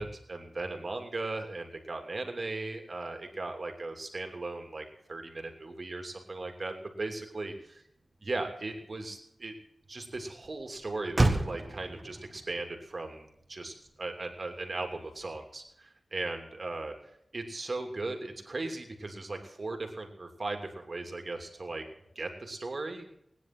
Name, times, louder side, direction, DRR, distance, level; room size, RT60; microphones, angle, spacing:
voice 1, 0.0-7.8 8.2-9.5 9.9-16.9 17.3-21.8 22.1-23.1, right 2 dB, 45° right, 4 dB, 2.9 m, -37 dB
Motor vehicle (road), 7.3-15.7, right 2 dB, 30° right, 2.0 m, -36 dB
19.5 x 10.0 x 6.1 m, 0.75 s
wide cardioid pair, 85°, 0 cm